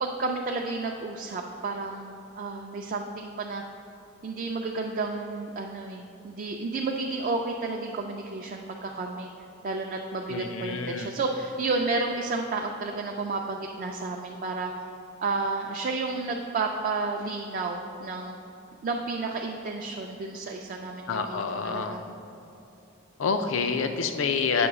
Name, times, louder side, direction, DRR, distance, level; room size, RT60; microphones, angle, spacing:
voice 1, 0.0-3.6 4.2-9.3 9.6-14.8 15.2-18.4 18.8-22.0, right 3 dB, 45° right, 1 dB, 0.4 m, -31 dB
voice 2, 10.3-11.1 21.1-22.0 23.2-24.7, left 5 dB, 75° left, 7 dB, 0.5 m, -27 dB
7.9 x 3.1 x 6.0 m, 2.9 s
head